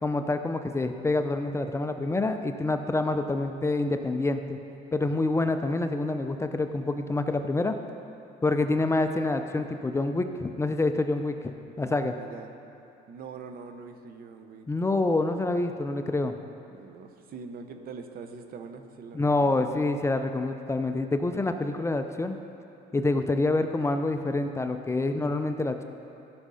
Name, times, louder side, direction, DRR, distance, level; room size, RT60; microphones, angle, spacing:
voice 1, 0.0-4.6 4.9-7.7 8.4-11.4 11.8-12.2 14.7-16.4 19.1-22.4 22.9-25.8, left 2 dB, 15° left, 7 dB, 0.5 m, -27 dB
voice 2, 12.0-12.5 13.1-14.7 16.7-19.8 23.1-23.5, right 5 dB, 60° right, 7 dB, 0.9 m, -43 dB
15.0 x 6.1 x 5.6 m, 2.7 s
cardioid pair, 110°, 17 cm